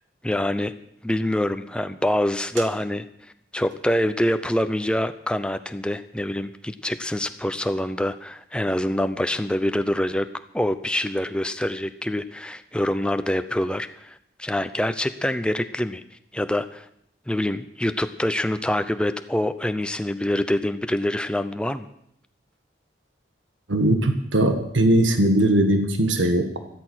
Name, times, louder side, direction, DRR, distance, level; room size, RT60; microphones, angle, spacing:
voice 1, 0.2-0.7 1.0-3.1 3.5-10.3 10.5-16.0 16.3-16.9 17.3-21.9, left 1 dB, 5° left, 10 dB, 0.6 m, -25 dB
voice 2, 23.7-26.6, right 1 dB, 80° right, 7 dB, 1.5 m, -20 dB
13.5 x 13.0 x 6.3 m, 0.72 s
head